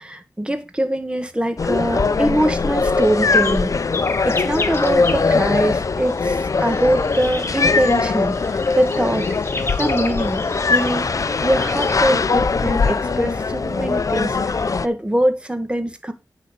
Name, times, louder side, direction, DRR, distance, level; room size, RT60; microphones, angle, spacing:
voice 1, 0.0-3.7 4.2-9.3 9.5-10.4 10.7-11.1 11.4-16.1, right 1 dB, 15° right, 1.6 m, -23 dB
sound 1, 1.6-14.9, left 4 dB, 55° left, 0.6 m, -21 dB
sound 2, 3.0-11.9, left 3 dB, 35° left, 1.4 m, -33 dB
9.8 x 4.1 x 6.7 m
wide cardioid pair, 70°, 7 cm